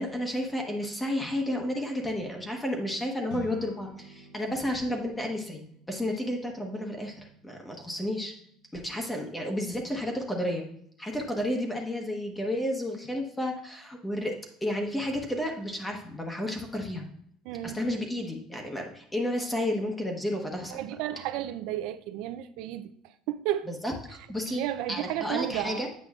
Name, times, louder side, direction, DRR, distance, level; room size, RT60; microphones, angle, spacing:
voice 1, 0.0-5.6 5.9-8.3 8.7-10.6 11.0-14.3 14.6-17.0 17.6-20.8 23.8-25.9, left 1 dB, 10° left, 0.9 m, -31 dB
sound 1, 3.3-12.8, left 2 dB, 80° left, 1.2 m, -52 dB
voice 2, 17.5-17.8 20.7-23.7 24.5-25.9, right 13 dB, 75° right, 0.4 m, -33 dB
8.2 x 5.1 x 2.4 m
cardioid pair, 115°, 0 cm